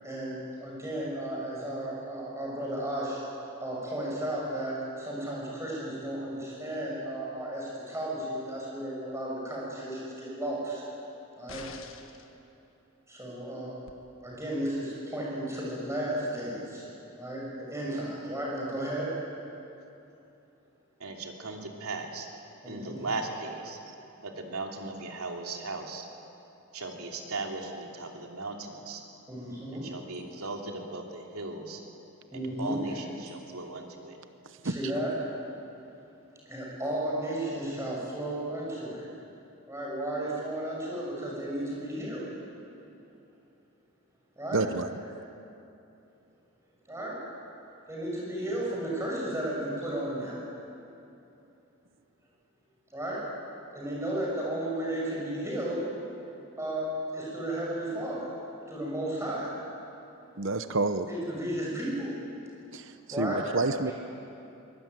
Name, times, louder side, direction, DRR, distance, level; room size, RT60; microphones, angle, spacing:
voice 1, 0.0-3.2 3.6-10.8 11.4-11.6 13.1-13.8 14.2-16.8 17.1-17.4 17.7-19.1 22.6-23.0 29.3-29.8 32.3-32.8 34.6-35.1 36.5-39.1 39.7-42.3 44.4-44.6 46.9-47.2 47.9-50.4 52.9-53.2 53.7-55.9 56.6-58.3 58.7-59.5 61.1-62.1 63.1-63.4, right 1 dB, 10° right, -4 dB, 6.3 m, -34 dB
sound 1, 11.5-12.3 13.9-14.0, left 5 dB, 65° left, 1.5 m, -45 dB
voice 2, 21.0-22.3 22.6-23.8 24.2-26.1 26.7-29.0 29.7-31.8 32.3-34.2, right 3 dB, 80° right, 2 dB, 3.0 m, -37 dB
voice 3, 34.4-34.8 44.5-44.9 60.4-61.1 62.7-63.9, right 3 dB, 55° right, 10 dB, 0.9 m, -29 dB
23.0 x 19.0 x 9.1 m, 2.8 s
head